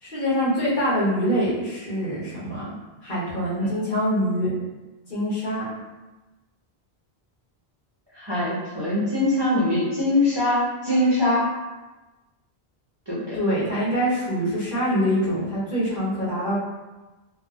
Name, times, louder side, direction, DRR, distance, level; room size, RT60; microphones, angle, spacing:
voice 1, 0.0-2.7 3.0-4.5 5.1-5.7 13.3-16.5, equal, 55° left, -11 dB, 1.3 m, -24 dB
voice 2, 8.1-11.4 13.1-13.4, left 1 dB, 30° right, -10 dB, 0.6 m, -22 dB
2.6 x 2.6 x 2.4 m, 1.1 s
omnidirectional pair, 1.0 m